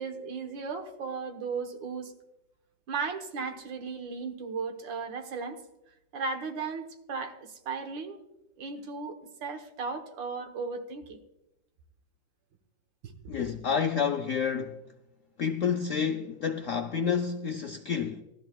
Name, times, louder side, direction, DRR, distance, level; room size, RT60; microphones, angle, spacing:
voice 1, 0.0-2.1 2.9-5.6 6.1-8.2 8.6-11.2 13.0-13.4, right 4 dB, 80° right, 1.9 m, -36 dB
voice 2, 13.3-14.8 15.4-18.2, left 6 dB, 75° left, 0.7 m, -29 dB
18.5 x 13.0 x 2.3 m
omnidirectional pair, 2.0 m